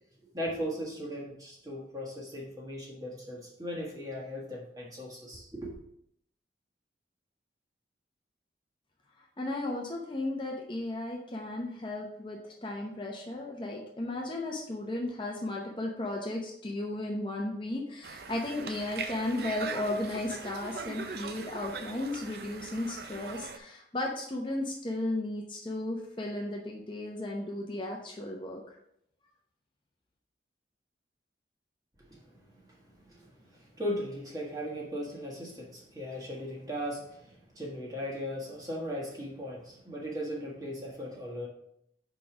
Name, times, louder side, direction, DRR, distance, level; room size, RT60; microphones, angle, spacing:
voice 1, 0.3-5.7 32.1-41.5, equal, 20° right, -3 dB, 1.6 m, -38 dB
voice 2, 9.2-28.8, left 1 dB, 25° left, 0 dB, 0.7 m, -35 dB
Conversation, 18.0-23.6, right 4 dB, 55° right, 0.5 m, -41 dB
5.0 x 4.5 x 5.9 m, 0.74 s
head